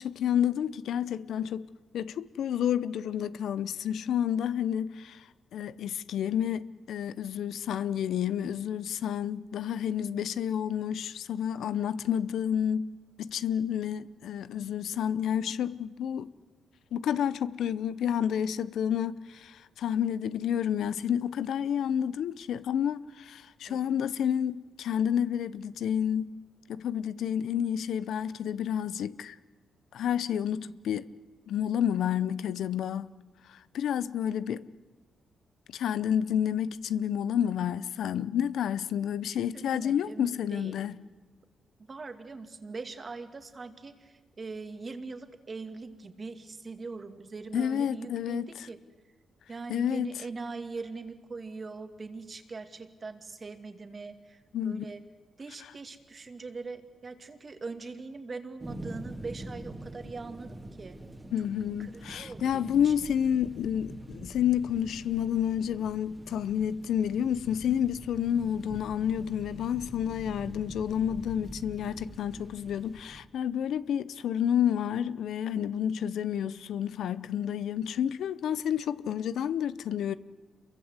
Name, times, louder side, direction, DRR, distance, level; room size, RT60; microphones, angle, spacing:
voice 1, 0.0-1.7 1.9-5.2 5.5-12.9 13.2-16.3 16.9-26.4 26.7-29.4 29.9-31.1 31.5-33.1 33.5-34.7 35.7-40.9 47.5-48.7 49.7-50.2 54.5-54.8 61.3-80.1, left 9 dB, 80° left, 0.7 m, -30 dB
voice 2, 23.7-24.0 39.2-40.8 41.9-48.8 49.5-55.0 55.4-61.0 61.8-62.9, right 4 dB, 30° right, 2.3 m, -42 dB
sound 1, 58.6-73.2, right 1 dB, 10° right, 2.4 m, -45 dB
27.5 x 23.0 x 8.1 m
cardioid pair, 115°, 0 cm